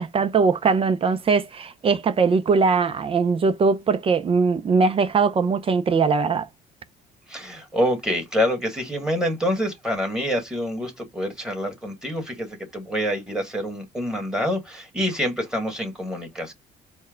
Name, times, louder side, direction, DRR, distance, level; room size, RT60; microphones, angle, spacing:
voice 1, 0.0-6.5, right 4 dB, 35° right, 0.5 m, -21 dB
voice 2, 7.3-16.5, equal, 5° right, 1.6 m, -26 dB
4.3 x 2.2 x 3.8 m
cardioid pair, 110°, 17 cm